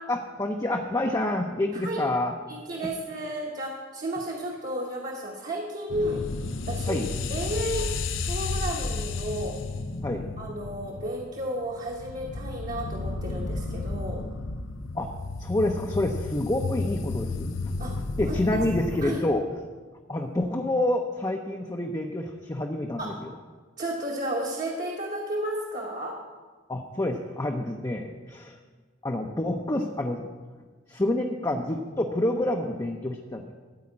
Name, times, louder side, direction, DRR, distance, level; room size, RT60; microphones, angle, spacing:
voice 1, 0.1-2.4 2.8-2.9 6.9-7.1 10.0-10.2 14.9-15.1 15.4-17.5 18.2-19.4 20.1-23.3 26.7-28.5 29.0-30.3 30.9-33.5, left 1 dB, 20° left, 1 dB, 0.6 m, -28 dB
voice 2, 1.7-2.1 2.5-6.2 6.6-7.0 7.3-8.0 8.2-9.6 10.4-14.2 17.8-17.9 18.2-18.6 19.0-19.2 23.0-23.2 23.8-26.2, right 1 dB, 40° right, -2 dB, 1.2 m, -33 dB
sound 1, 5.9-19.1, left 3 dB, 65° left, 0.6 m, -32 dB
13.5 x 4.9 x 8.6 m, 1.4 s
head